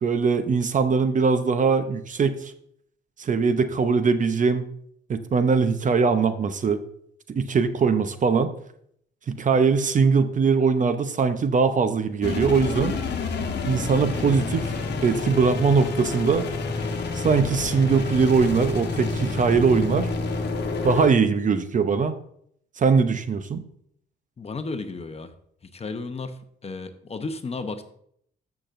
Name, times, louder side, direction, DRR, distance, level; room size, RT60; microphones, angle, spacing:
voice 1, 0.0-2.5 3.2-4.6 5.1-6.8 7.3-8.5 9.3-13.0 13.7-14.8 15.0-16.5 17.1-20.1 20.8-22.1 22.8-23.6, right 5 dB, 40° right, 10 dB, 0.6 m, -21 dB
sound 1, 12.2-21.1, left 4 dB, 55° left, 1.2 m, -29 dB
voice 2, 24.4-25.3 25.6-27.8, left 3 dB, 30° left, 8 dB, 0.8 m, -33 dB
14.0 x 6.0 x 2.6 m, 0.69 s
cardioid pair, 90°, 20 cm